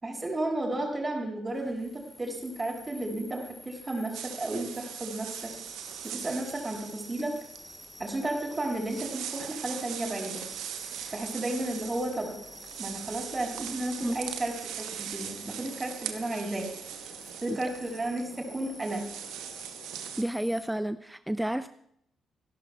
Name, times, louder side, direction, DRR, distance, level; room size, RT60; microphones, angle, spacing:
voice 1, 0.0-1.9 2.2-5.5 6.0-7.3 8.0-10.4 11.1-12.3 12.8-16.7 17.4-19.0, right 1 dB, 25° right, 1 dB, 6.0 m, -33 dB
sound 1, 1.5-20.7, left 2 dB, 20° left, 3.0 m, -49 dB
sound 2, 4.1-20.2, right 10 dB, 70° right, 1.0 m, -41 dB
voice 2, 20.2-21.7, right 1 dB, 10° right, 12 dB, 0.6 m, -30 dB
26.0 x 12.0 x 2.4 m, 0.70 s
hypercardioid pair, 40°, 0 cm